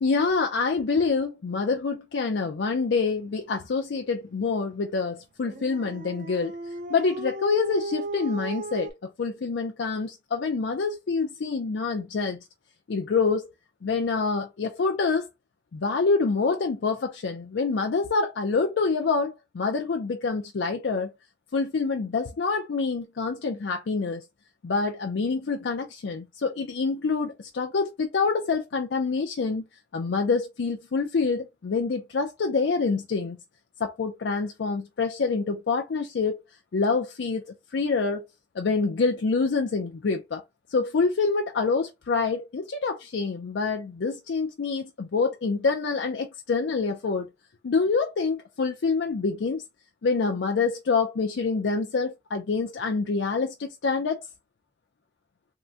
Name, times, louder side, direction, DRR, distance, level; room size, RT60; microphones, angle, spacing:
voice 1, 0.0-6.5 6.9-12.4 12.9-13.5 13.8-15.3 15.7-21.1 21.5-24.2 24.6-29.6 29.9-33.4 33.8-36.4 36.7-37.4 37.7-38.3 38.6-40.4 40.7-47.3 47.6-49.6 50.0-54.2, left 4 dB, 85° left, 0.4 m, -26 dB
Dog, 5.4-8.9, right 1 dB, 45° right, 0.5 m, -35 dB
3.7 x 2.1 x 2.7 m
head